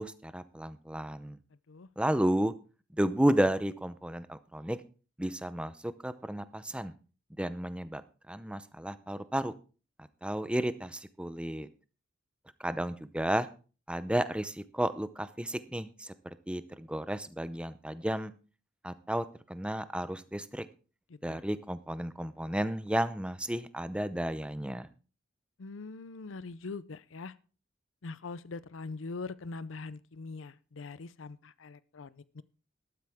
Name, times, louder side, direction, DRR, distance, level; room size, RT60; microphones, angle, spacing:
voice 1, 0.0-1.4 2.0-2.5 2.9-4.8 5.2-6.9 7.4-8.0 8.3-9.5 10.0-11.7 12.6-13.5 13.9-16.1 16.5-18.3 18.8-20.7 21.2-24.9, right 1 dB, 5° right, 13 dB, 0.7 m, -32 dB
voice 2, 21.1-21.4 25.6-27.4 28.0-32.4, left 3 dB, 80° left, 17 dB, 0.6 m, -42 dB
13.0 x 12.5 x 3.6 m, 0.36 s
head